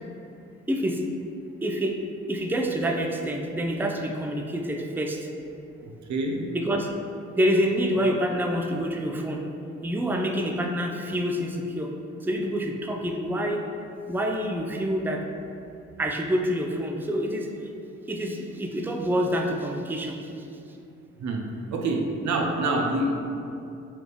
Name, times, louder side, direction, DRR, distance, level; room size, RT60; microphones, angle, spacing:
voice 1, 0.7-1.0 1.6-1.9 2.3-5.3 6.5-6.9 7.4-9.4 9.8-11.9 12.2-13.6 14.1-15.2 16.0-17.5 18.1-20.2, equal, 5° right, 2 dB, 0.5 m, -27 dB
voice 2, 5.8-6.5 21.2-23.4, right 2 dB, 65° right, 1 dB, 0.6 m, -27 dB
4.2 x 3.3 x 3.2 m, 2.6 s
supercardioid pair, 45°, 30 cm